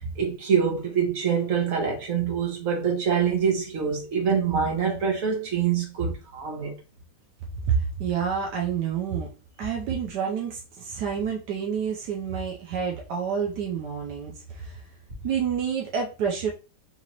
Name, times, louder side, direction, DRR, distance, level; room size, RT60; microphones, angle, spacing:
voice 1, 0.0-6.7, right 7 dB, 50° right, 1.5 m, -25 dB
voice 2, 7.7-9.3 9.6-14.8 15.2-16.5, right 7 dB, 80° right, 1.4 m, -28 dB
4.1 x 2.9 x 2.9 m
omnidirectional pair, 1.8 m